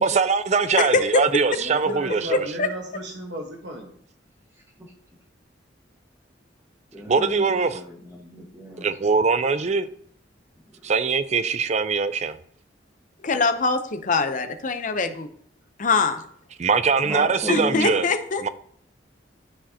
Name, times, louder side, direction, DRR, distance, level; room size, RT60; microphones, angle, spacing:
voice 1, 0.0-2.5 7.1-7.8 8.8-9.9 10.8-12.4 16.6-18.1 18.4-18.5, right 5 dB, 40° right, 0.5 m, -22 dB
voice 2, 0.8-1.2 2.3-2.7 13.2-15.3 15.8-16.2 17.5-18.4, left 3 dB, 45° left, 0.7 m, -23 dB
voice 3, 1.5-3.9, right 1 dB, 70° right, 1.3 m, -35 dB
voice 4, 6.9-8.9 17.0-17.9, equal, 15° right, 1.5 m, -34 dB
12.5 x 5.1 x 2.8 m
head